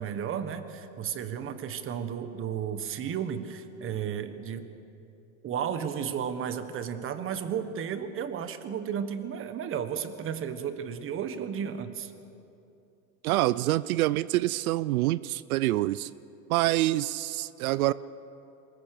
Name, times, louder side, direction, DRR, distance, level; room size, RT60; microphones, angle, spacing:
voice 1, 0.0-4.7 5.4-12.1, right 8 dB, 30° right, 10 dB, 1.4 m, -33 dB
voice 2, 13.2-16.1 16.5-17.9, right 16 dB, 90° right, 18 dB, 0.6 m, -26 dB
23.5 x 21.0 x 6.7 m, 2.8 s
supercardioid pair, 135°, 42 cm